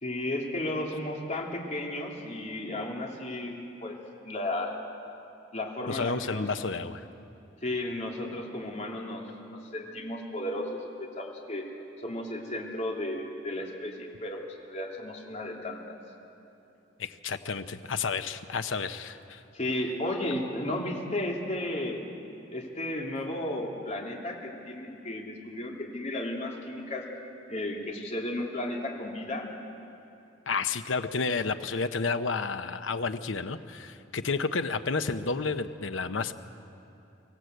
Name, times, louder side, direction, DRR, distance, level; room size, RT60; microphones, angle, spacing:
voice 1, 0.0-3.5 3.8-4.0 4.2-4.8 5.5-6.4 7.6-9.2 9.7-11.6 12.0-16.0 19.5-22.1 22.5-27.0 27.5-29.4, left 1 dB, 40° left, -1 dB, 2.9 m, -34 dB
voice 2, 5.9-7.0 17.0-19.4 30.5-36.3, left 4 dB, 85° left, 10 dB, 0.9 m, -31 dB
25.0 x 17.0 x 8.0 m, 2.8 s
head